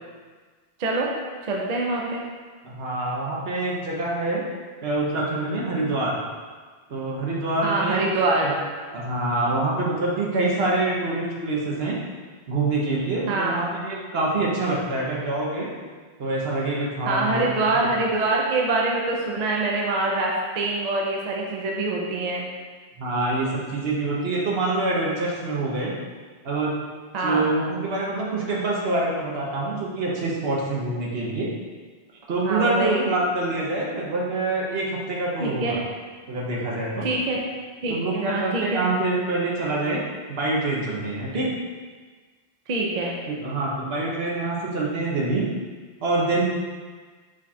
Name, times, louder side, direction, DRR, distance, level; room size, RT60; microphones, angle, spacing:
voice 1, 1.4-2.3 7.6-8.5 13.3-13.7 17.1-22.5 27.1-27.4 32.4-33.0 35.4-35.8 37.0-37.4 37.8-38.9 42.7-43.2, right 2 dB, 45° right, -2 dB, 0.6 m, -25 dB
voice 2, 2.6-4.4 4.8-6.2 6.9-8.0 8.4-8.5 8.9-12.0 12.5-15.7 16.2-17.5 23.0-25.9 26.4-26.7 27.2-31.5 32.3-35.8 36.3-37.1 37.9-40.0 40.3-41.5 43.3-45.5 46.0-46.4, right 2 dB, 65° right, -4 dB, 1.1 m, -25 dB
5.0 x 2.4 x 4.1 m, 1.5 s
omnidirectional pair, 1.1 m